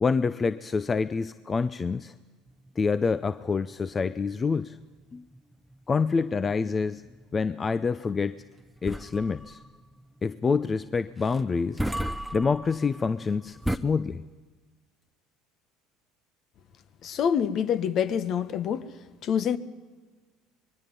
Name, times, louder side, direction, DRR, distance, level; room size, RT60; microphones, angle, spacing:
voice 1, 0.0-2.1 2.8-4.8 5.1-5.2 5.9-7.0 7.3-8.4 8.8-9.6 10.2-11.8 12.3-14.2, left 5 dB, 30° left, 0.6 m, -27 dB
sound 1, 2.5-13.8, equal, ahead, 0.8 m, -37 dB
voice 2, 17.0-18.9 19.2-19.6, left 8 dB, 50° left, 1.0 m, -26 dB
24.0 x 21.0 x 5.3 m
hypercardioid pair, 70°, 0 cm